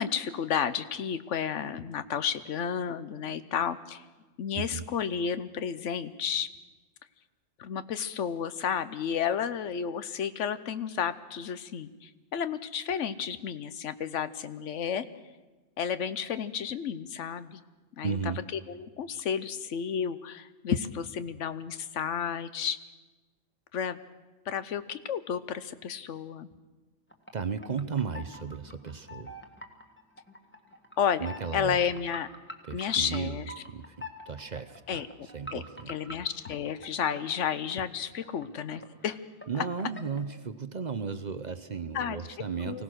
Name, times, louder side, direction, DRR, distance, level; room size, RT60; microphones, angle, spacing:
voice 1, 0.0-4.0 4.4-6.5 7.6-15.0 15.8-17.6 18.0-18.2 18.7-22.8 23.7-24.0 24.5-26.5 31.0-31.3 31.5-32.3 32.7-33.4 34.9-35.1 35.5-39.2 41.9-42.2 42.6-42.8, left 7 dB, 80° left, 13 dB, 1.2 m, -32 dB
voice 2, 4.5-4.8 18.0-18.4 27.3-29.5 31.2-31.9 32.6-35.9 39.5-42.8, right 6 dB, 45° right, 12 dB, 0.7 m, -35 dB
sound 1, 27.1-27.3 27.6-33.2 33.5-39.1 39.4-40.4, left 1 dB, 10° left, 1.6 m, -46 dB
24.5 x 17.0 x 6.3 m, 1.2 s
omnidirectional pair, 1.2 m